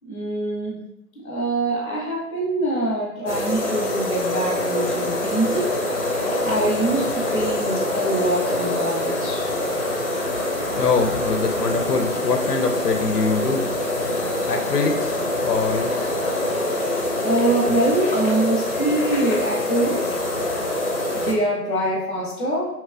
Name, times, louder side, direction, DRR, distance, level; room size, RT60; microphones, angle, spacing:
voice 1, 0.0-0.8 1.2-5.7 6.2-9.5 17.2-20.2 21.1-22.7, right 1 dB, 10° left, -15 dB, 0.8 m, -24 dB
sound 1, 3.3-21.3, left 1 dB, 40° left, 0.8 m, -25 dB
voice 2, 10.8-13.7 14.5-16.1, left 4 dB, 75° left, 5 dB, 0.7 m, -23 dB
4.6 x 3.1 x 2.4 m, 0.86 s
figure-of-eight pair, 145°, 47 cm